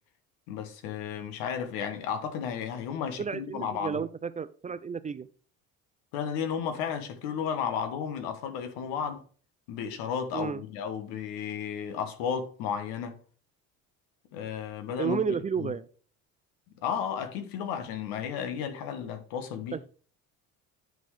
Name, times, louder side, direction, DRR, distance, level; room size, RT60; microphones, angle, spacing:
voice 1, 0.5-4.0 6.1-9.2 9.7-13.2 14.3-15.7 16.8-19.8, left 7 dB, 80° left, 1.3 m, -33 dB
voice 2, 3.2-5.3 10.3-10.6 15.0-15.9 19.7-19.9, right 6 dB, 20° right, 0.4 m, -32 dB
9.5 x 3.7 x 4.8 m
supercardioid pair, 85°, 35 cm